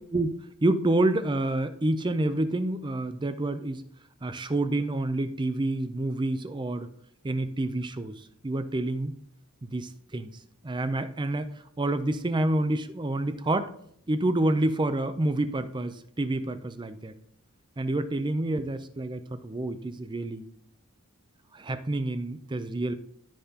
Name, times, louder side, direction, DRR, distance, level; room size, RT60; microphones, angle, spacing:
voice 1, 0.1-3.8 4.2-6.9 7.2-9.1 9.6-10.3 10.6-11.5 11.8-13.7 14.1-17.1 17.8-20.4 21.5-23.0, right 2 dB, 20° right, 10 dB, 0.5 m, -28 dB
13.5 x 5.7 x 2.9 m, 0.69 s
head